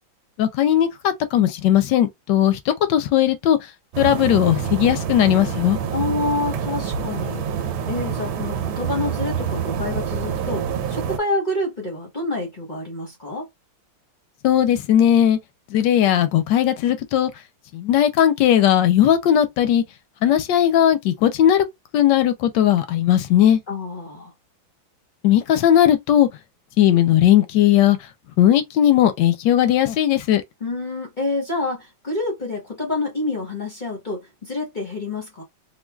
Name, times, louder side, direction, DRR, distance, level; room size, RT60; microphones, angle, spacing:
voice 1, 0.4-3.6 4.0-5.8 14.4-15.4 15.7-17.3 17.7-19.8 20.2-21.6 21.9-23.6 25.2-26.3 26.8-28.0 28.4-30.4, left 11 dB, 75° left, 1.1 m, -17 dB
sound 1, 3.9-11.2, right 7 dB, 80° right, 1.4 m, -26 dB
voice 2, 5.9-7.5 7.9-13.5 23.7-24.3 30.6-35.4, left 2 dB, 40° left, 0.7 m, -27 dB
3.8 x 2.4 x 2.2 m
omnidirectional pair, 2.2 m